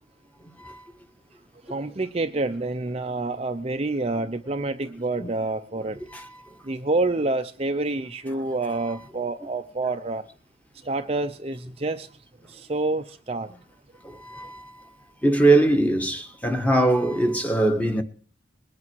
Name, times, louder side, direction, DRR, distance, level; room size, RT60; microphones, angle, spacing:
voice 1, 1.7-6.0 6.6-10.2 10.9-12.1 12.5-13.5, right 2 dB, 30° right, 0.7 m, -27 dB
voice 2, 6.1-6.5 14.0-14.8 15.2-18.0, right 2 dB, 10° left, 1.5 m, -22 dB
21.5 x 8.6 x 4.7 m
head